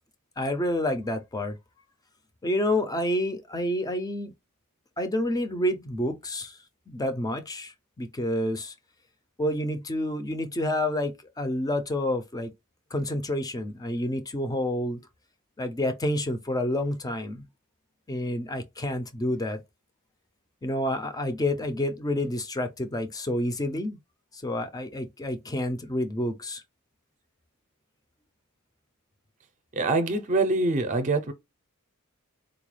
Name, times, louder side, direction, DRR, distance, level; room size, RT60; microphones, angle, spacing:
voice 1, 0.4-1.6 2.4-4.3 5.0-6.6 6.9-8.7 9.4-12.5 12.9-15.0 15.6-17.4 18.1-19.6 20.6-24.0 24.3-26.6, left 1 dB, 15° left, 0.4 m, -29 dB
voice 2, 29.7-31.3, right 2 dB, 35° right, 0.5 m, -24 dB
3.8 x 2.2 x 3.1 m
head